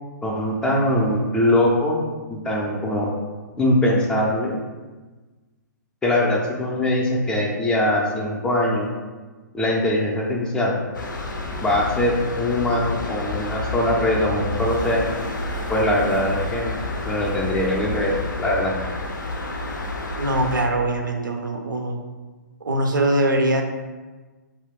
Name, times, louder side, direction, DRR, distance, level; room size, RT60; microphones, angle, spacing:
voice 1, 0.2-2.0 2.3-3.1 3.6-4.5 6.0-8.9 9.5-10.7 11.6-15.0 15.7-16.7 17.1-18.7, left 1 dB, 10° left, -2 dB, 0.3 m, -22 dB
sound 1, 10.9-20.7, left 2 dB, 85° left, 0.4 m, -29 dB
voice 2, 20.2-22.0 22.6-23.6, right 1 dB, 85° right, 3 dB, 0.4 m, -22 dB
2.3 x 2.1 x 3.4 m, 1.3 s
figure-of-eight pair, 125°, 10 cm